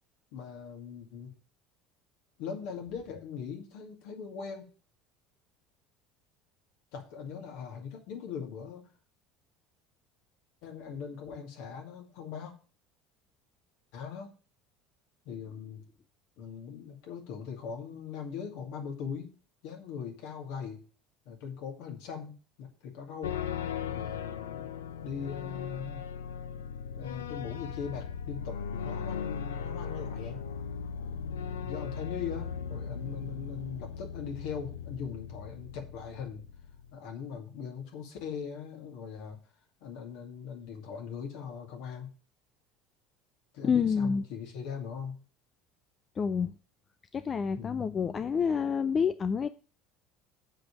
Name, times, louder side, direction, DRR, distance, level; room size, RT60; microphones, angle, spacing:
voice 1, 0.3-1.3 2.4-4.7 6.9-8.9 10.6-12.5 13.9-14.3 15.2-15.8 16.4-19.3 19.6-20.8 21.3-22.3 22.6-23.4 23.9-24.7 25.0-26.0 26.9-30.5 31.6-36.4 36.9-39.4 39.8-42.1 43.5-45.2 47.5-47.9, left 7 dB, 65° left, 2 dB, 2.4 m, -40 dB
sound 1, 23.2-36.9, left 7 dB, 80° left, 0.7 m, -38 dB
voice 2, 43.6-44.2 46.2-46.5 47.1-49.5, left 6 dB, 35° left, 13 dB, 0.5 m, -28 dB
7.7 x 5.1 x 7.1 m, 0.38 s
hypercardioid pair, 70°, 0 cm